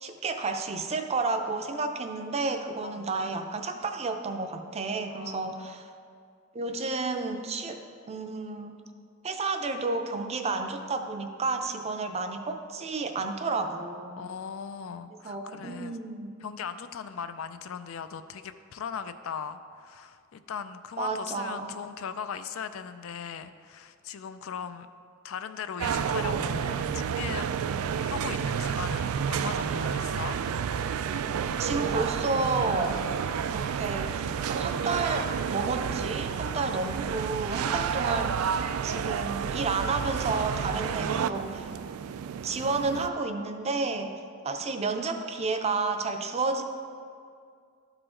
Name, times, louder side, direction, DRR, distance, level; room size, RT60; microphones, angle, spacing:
voice 1, 0.0-5.9 6.5-7.8 8.1-8.8 9.2-14.2 15.2-16.3 21.0-21.7 31.6-33.1 33.5-38.6 38.8-41.7 42.4-44.1 44.4-46.6, right 3 dB, 30° right, 6 dB, 0.5 m, -31 dB
voice 2, 5.1-5.7 14.1-16.0 16.4-24.9 25.2-27.5 28.0-30.4 36.6-36.9, left 7 dB, 70° left, 11 dB, 0.4 m, -39 dB
sound 1, 25.8-43.1, right 7 dB, 85° right, 0.3 m, -30 dB
sound 2, 28.2-36.1, left 3 dB, 90° left, 0.9 m, -53 dB
12.5 x 4.9 x 3.7 m, 2.2 s
head